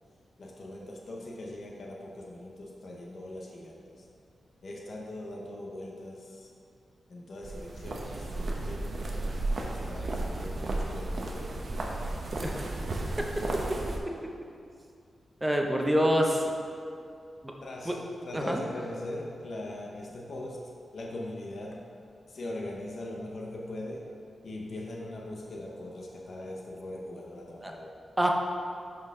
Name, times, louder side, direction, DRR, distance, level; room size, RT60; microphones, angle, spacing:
voice 1, 0.4-4.1 4.6-6.5 7.1-9.2 9.6-11.9 17.6-20.6 20.9-21.8 22.3-24.1 24.4-27.9, left 1 dB, 50° left, -2 dB, 0.8 m, -41 dB
sound 1, 7.4-14.0, right 2 dB, 45° right, 0.8 m, -33 dB
voice 2, 15.4-16.4 17.4-17.5 17.9-18.0 18.3-18.6 27.6-27.7 28.2-28.3, equal, 10° right, 1 dB, 0.7 m, -26 dB
10.5 x 4.6 x 3.6 m, 2.4 s
wide cardioid pair, 170°, 0 cm